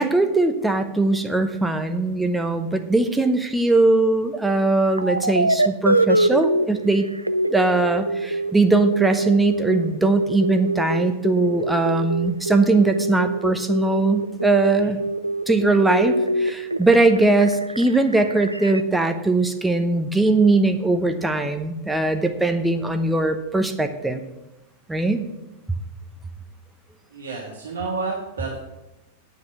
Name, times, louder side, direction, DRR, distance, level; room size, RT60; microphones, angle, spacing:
voice 1, 0.0-7.1 7.5-15.0 15.5-24.2 24.9-25.2, right 2 dB, 5° right, 7 dB, 0.9 m, -20 dB
sound 1, 5.0-6.7 7.1-18.8, right 1 dB, 85° right, 0.4 m, -24 dB
voice 2, 27.1-28.6, right 4 dB, 70° right, -3 dB, 1.7 m, -30 dB
9.8 x 6.7 x 6.1 m, 0.97 s
figure-of-eight pair, 90°, 0 cm